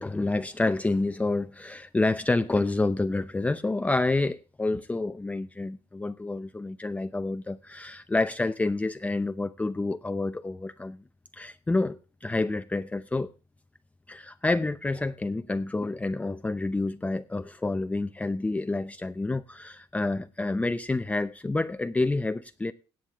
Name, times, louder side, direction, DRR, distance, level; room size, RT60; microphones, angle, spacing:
voice 1, 0.0-11.0 11.3-13.3 14.1-22.7, left 2 dB, 10° left, 0.6 m, -28 dB
17.0 x 8.7 x 3.5 m
cardioid pair, 125°, 11 cm